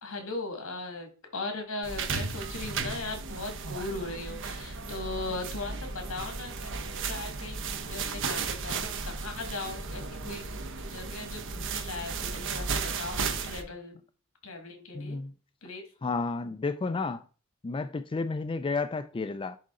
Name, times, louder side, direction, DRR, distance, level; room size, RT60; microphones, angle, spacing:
voice 1, 0.0-10.6 10.9-14.0 14.4-15.2 15.6-15.9, left 2 dB, 85° left, 2.0 m, -38 dB
sound 1, 1.8-13.6, right 4 dB, 65° right, 0.9 m, -35 dB
voice 2, 14.9-15.3 16.0-17.2 17.6-19.6, left 3 dB, 25° left, 0.4 m, -31 dB
10.5 x 3.9 x 3.7 m
head